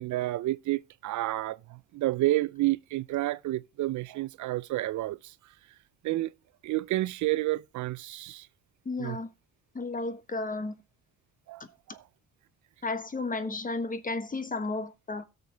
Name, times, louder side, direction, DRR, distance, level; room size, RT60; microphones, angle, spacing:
voice 1, 0.0-5.3 6.0-6.3 6.6-8.5 9.0-9.2 11.5-12.0, right 17 dB, 75° right, 0.5 m, -30 dB
voice 2, 8.8-9.3 9.7-10.7 12.8-15.2, left 3 dB, 25° left, 1.3 m, -33 dB
17.0 x 6.7 x 3.4 m
cardioid pair, 90°, 30 cm